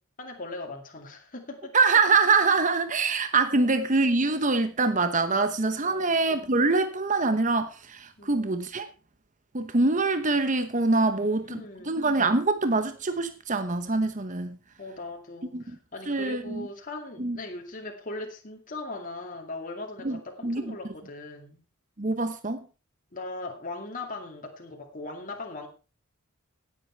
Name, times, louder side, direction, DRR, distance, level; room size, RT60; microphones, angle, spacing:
voice 1, 0.2-1.8 3.6-3.7 5.8-6.2 8.2-8.4 11.1-12.0 14.8-21.6 23.1-25.7, left 2 dB, 40° left, 2.4 m, -39 dB
voice 2, 1.7-8.9 9.5-14.6 15.5-15.8 16.1-16.7 17.2-17.4 20.0-20.7 22.0-22.6, right 3 dB, 35° right, 1.1 m, -24 dB
16.0 x 8.4 x 4.5 m
head